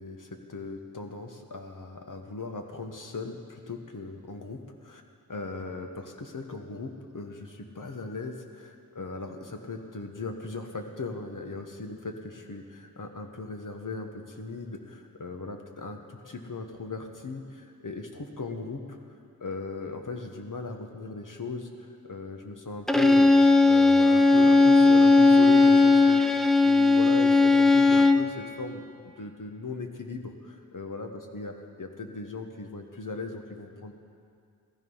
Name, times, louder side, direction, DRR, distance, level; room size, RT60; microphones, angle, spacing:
voice 1, 0.0-5.0 5.3-19.0 19.4-21.7 22.0-23.3 23.7-26.2 26.6-31.5 31.8-33.9, left 3 dB, 65° left, 4 dB, 1.4 m, -38 dB
Bowed string instrument, 22.9-28.3, left 3 dB, ahead, 0.6 m, -18 dB
15.0 x 14.5 x 5.6 m, 2.3 s
wide cardioid pair, 85°, 35 cm